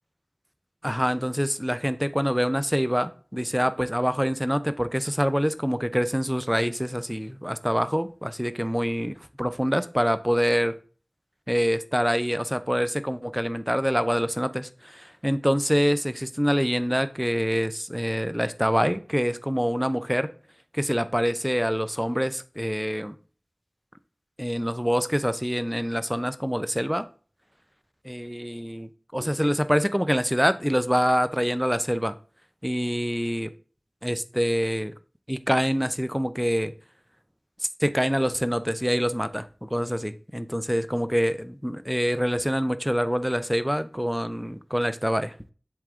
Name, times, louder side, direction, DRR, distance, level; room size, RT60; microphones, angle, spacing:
voice 1, 0.8-10.7 11.5-20.3 20.7-23.2 24.4-27.1 28.0-32.1 32.6-33.5 34.0-34.9 35.3-36.7 37.8-45.3, equal, 5° right, 12 dB, 0.5 m, -25 dB
7.6 x 3.5 x 3.6 m, 0.39 s
wide cardioid pair, 40°, 0 cm